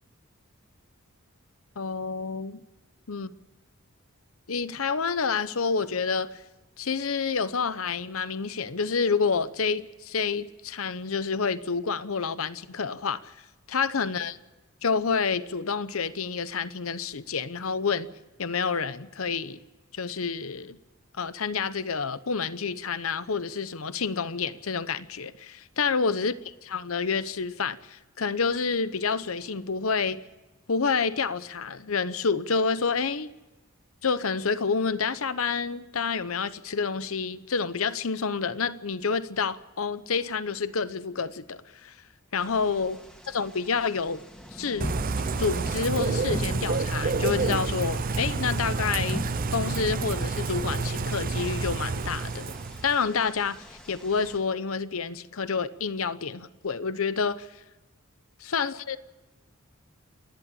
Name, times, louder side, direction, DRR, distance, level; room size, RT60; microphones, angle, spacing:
voice 1, 1.8-2.6 3.1-3.3 4.5-6.4 6.8-13.3 13.7-14.4 14.8-18.1 18.4-19.6 19.9-20.8 21.2-30.2 30.7-33.3 34.0-41.9 42.3-43.0 43.3-44.2 44.5-45.0 45.4-49.3 49.5-52.5 52.8-57.5 58.4-59.0, left 5 dB, 75° left, 0.9 m, -28 dB
sound 1, 42.4-54.4, equal, 5° left, 2.2 m, -40 dB
Bird / Rain, 44.8-53.0, right 4 dB, 45° right, 0.6 m, -29 dB
28.0 x 11.0 x 8.6 m
head